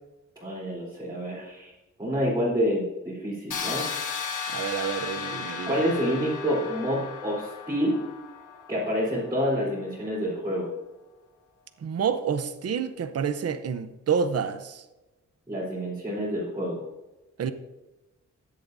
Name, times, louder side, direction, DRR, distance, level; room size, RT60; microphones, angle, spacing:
voice 1, 0.4-1.7 2.0-3.9 5.7-8.0 8.7-10.7 15.5-16.8, equal, 15° right, 3.6 m, -28 dB
sound 1, 3.5-9.3, left 6 dB, 90° left, 1.3 m, -35 dB
voice 2, 4.5-5.8 11.8-14.8 17.4-17.5, right 7 dB, 55° right, 0.7 m, -28 dB
15.5 x 10.5 x 2.7 m
wide cardioid pair, 165°, 30 cm